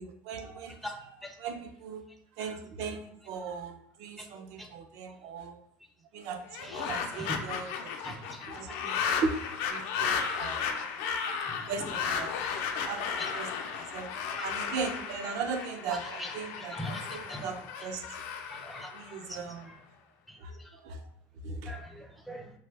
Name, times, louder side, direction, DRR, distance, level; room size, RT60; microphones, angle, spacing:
voice 1, 0.0-1.1 1.4-2.0 2.4-5.6 6.1-8.0 8.3-9.3 9.7-10.9 11.7-12.4 12.8-14.1 14.4-18.0 18.9-19.7 20.4-20.5 20.8-21.0 21.4-21.7, right 5 dB, 60° right, 6 dB, 0.5 m, -38 dB
sound 1, 6.5-19.6, left 6 dB, 75° left, 0.4 m, -34 dB
voice 2, 6.6-7.5 8.0-8.8 9.2-9.4 11.5-12.2 13.2-13.7 14.4-14.5 15.9-16.3 16.6-17.5 18.5-19.8 20.3-20.7 21.7-22.5, equal, ahead, 2 dB, 0.4 m, -43 dB
2.8 x 2.2 x 3.3 m, 0.73 s
cardioid pair, 165°, 7 cm